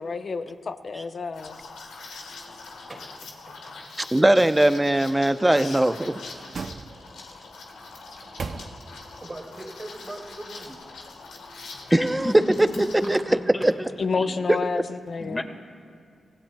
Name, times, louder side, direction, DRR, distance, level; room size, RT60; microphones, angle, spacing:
voice 1, 0.0-1.6 14.0-15.4, left 4 dB, 60° left, 9 dB, 0.7 m, -29 dB
Liquid, 1.3-13.2, left 3 dB, 85° left, 1.4 m, -43 dB
voice 2, 2.9-4.1 7.0-7.5 9.2-10.8, right 1 dB, 35° right, 1 dB, 2.1 m, -42 dB
voice 3, 4.0-6.1 11.9-12.3 13.1-13.2 13.6-13.7, right 1 dB, 15° right, 11 dB, 0.7 m, -20 dB
sound 1, 6.0-7.4 7.9-9.2 9.6-9.7, right 4 dB, 60° right, 0.5 m, -39 dB
voice 4, 11.9-12.6 13.0-13.9 14.1-14.3 15.2-15.4, left 1 dB, 20° left, 5 dB, 1.7 m, -32 dB
24.5 x 16.0 x 2.3 m, 2.3 s
supercardioid pair, 45°, 0 cm